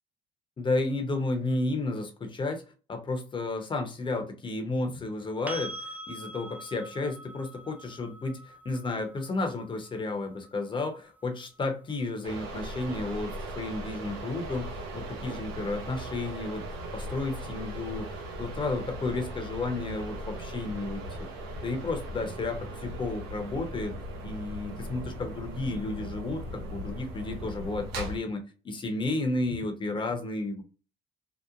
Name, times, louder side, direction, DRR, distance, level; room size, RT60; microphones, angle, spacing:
voice 1, 0.6-2.6 2.9-16.7 16.9-21.3 21.6-23.9 24.2-30.6, left 2 dB, 30° left, 0.8 m, -32 dB
sound 1, 5.5-13.3 16.1-16.2, right 1 dB, 10° right, 0.3 m, -45 dB
sound 2, 12.2-28.2, right 1 dB, 85° right, 0.7 m, -38 dB
2.8 x 2.1 x 2.4 m
supercardioid pair, 80°, 16 cm